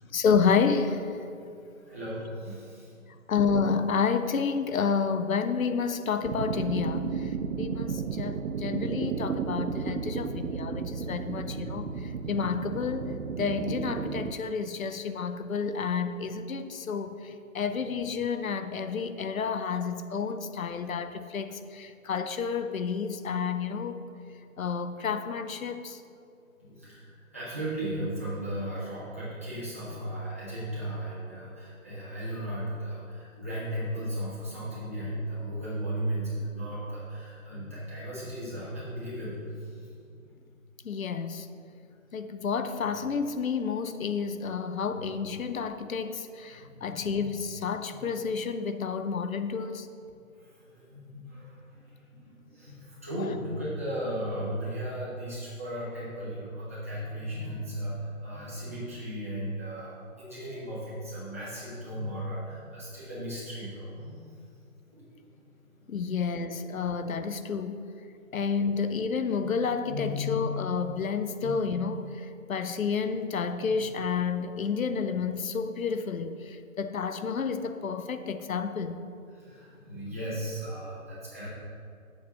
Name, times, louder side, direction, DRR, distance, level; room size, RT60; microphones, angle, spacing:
voice 1, 0.1-1.1 3.3-24.0 24.6-26.0 40.8-41.5 42.1-49.9 65.9-67.9 68.3-79.0, left 5 dB, 75° left, 0.7 m, -30 dB
voice 2, 1.9-3.2 10.2-10.3 26.6-40.2 44.9-45.1 46.6-47.3 47.8-48.0 50.4-64.2 64.9-66.3 69.8-70.5 71.4-71.5 73.6-73.7 79.3-81.5, equal, 10° right, 0.8 m, -36 dB
sound 1, 6.2-14.3, right 6 dB, 90° right, 0.6 m, -33 dB
7.1 x 4.8 x 6.8 m
hypercardioid pair, 175°, 41 cm